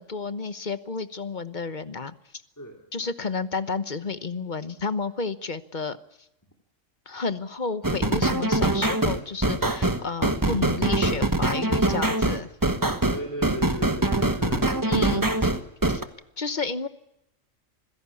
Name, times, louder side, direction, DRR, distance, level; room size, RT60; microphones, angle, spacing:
voice 1, 0.0-2.1 2.9-6.0 7.1-12.5 14.9-15.5 15.8-16.0 16.4-16.9, left 4 dB, 40° left, 13 dB, 1.1 m, -31 dB
sound 1, 7.8-16.0, right 2 dB, 15° right, 1.3 m, -23 dB
voice 2, 13.1-15.3, equal, 15° left, 2 dB, 2.8 m, -37 dB
26.0 x 16.5 x 8.4 m, 0.85 s
omnidirectional pair, 1.3 m